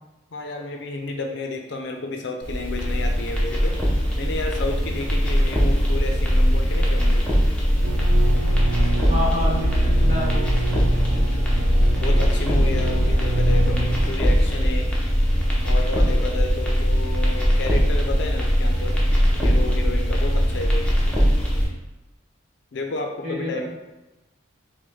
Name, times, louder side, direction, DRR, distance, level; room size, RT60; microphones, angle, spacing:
voice 1, 0.3-3.8 4.2-7.3 12.0-14.9 15.6-19.0 19.4-20.8 22.7-23.7, left 2 dB, 65° left, 4 dB, 0.4 m, -31 dB
sound 1, 2.4-21.6, equal, 5° left, 0.7 m, -20 dB
sound 2, 7.8-14.1, right 2 dB, 80° right, 0.4 m, -27 dB
voice 2, 9.1-10.4 23.2-23.7, left 1 dB, 35° right, -5 dB, 1.0 m, -28 dB
4.8 x 2.1 x 3.6 m, 1.0 s
head